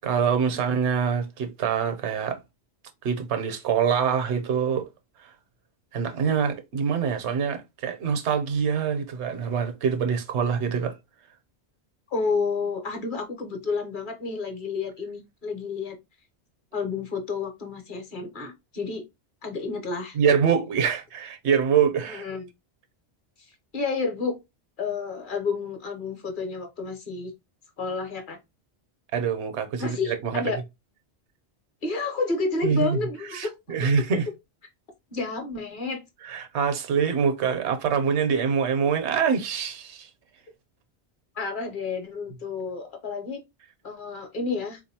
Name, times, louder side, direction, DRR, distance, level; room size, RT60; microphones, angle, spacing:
voice 1, 0.0-2.4 3.0-4.9 5.9-10.9 20.1-22.3 29.1-30.4 32.6-33.0 33.3-34.2 36.2-40.1, right 6 dB, 80° right, 1.0 m, -25 dB
voice 2, 12.1-16.0 16.7-19.0 19.4-20.2 22.1-22.5 23.7-24.4 24.8-27.3 27.8-28.4 29.8-30.6 31.8-33.5 34.0-34.1 35.1-36.0 41.4-43.4 43.8-44.8, left 4 dB, 50° left, 1.0 m, -30 dB
3.7 x 2.6 x 2.7 m
omnidirectional pair, 1.1 m